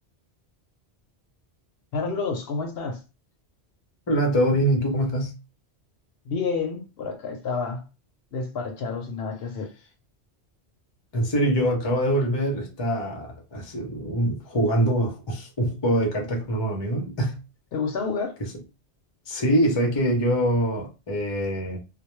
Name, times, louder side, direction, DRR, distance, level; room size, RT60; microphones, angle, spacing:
voice 1, 1.9-3.0 6.3-7.8 8.3-9.7 17.7-18.4, left 4 dB, 65° left, 0.8 m, -29 dB
voice 2, 4.1-5.3 11.1-17.4 19.3-21.8, right 1 dB, 30° left, 0.6 m, -24 dB
2.2 x 2.1 x 3.0 m
omnidirectional pair, 1.1 m